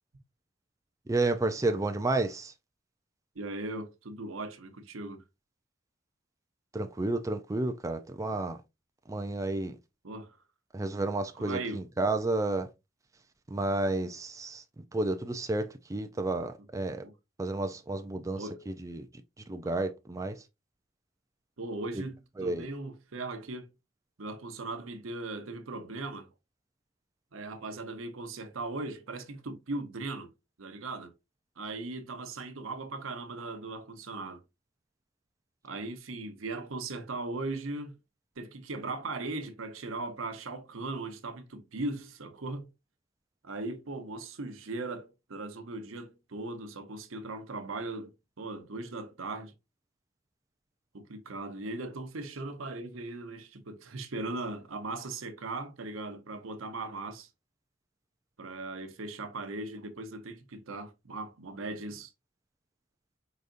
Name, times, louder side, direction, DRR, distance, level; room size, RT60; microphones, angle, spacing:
voice 1, 1.1-2.5 6.7-8.6 9.1-9.8 10.7-12.7 13.5-14.6 14.9-17.0 17.4-19.1 19.5-20.3 22.4-22.6, right 2 dB, 15° right, 0.4 m, -31 dB
voice 2, 3.3-5.2 10.0-10.4 11.3-11.9 17.0-17.1 18.3-18.6 19.6-19.8 21.6-23.7 24.2-26.3 27.3-30.3 30.6-31.1 31.6-34.4 35.6-37.9 38.4-42.7 43.4-48.1 48.4-49.5 50.9-57.3 58.4-62.1, right 2 dB, 85° right, 0.8 m, -38 dB
4.9 x 4.0 x 2.5 m
head